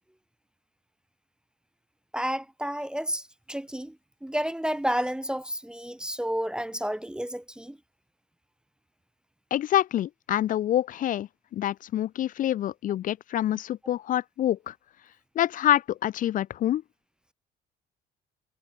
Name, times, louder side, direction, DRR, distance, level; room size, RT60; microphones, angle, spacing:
voice 1, 2.1-3.2 3.5-4.0 4.2-7.8, equal, 5° right, 0.6 m, -30 dB
voice 2, 9.5-14.7 15.4-16.8, left 12 dB, 50° left, 0.5 m, -26 dB
cardioid pair, 110°, 17 cm